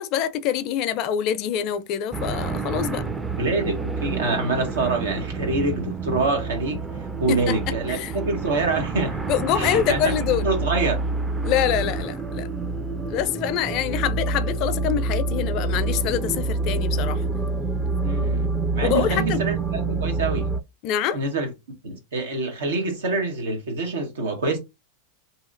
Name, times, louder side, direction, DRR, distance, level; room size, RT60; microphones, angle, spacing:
voice 1, 0.0-3.1 7.3-7.6 7.9-8.1 9.3-10.5 11.4-12.5 13.0-17.2 18.8-19.4 20.8-21.2, left 9 dB, 50° left, 0.4 m, -25 dB
sound 1, 2.1-20.6, right 3 dB, 10° right, 0.4 m, -27 dB
voice 2, 3.4-6.8 7.2-9.2 9.5-10.1 10.4-11.0 18.0-20.5 21.1-21.5 21.8-24.6, right 3 dB, 85° right, 1.2 m, -26 dB
2.8 x 2.7 x 2.5 m
hypercardioid pair, 110°, 0 cm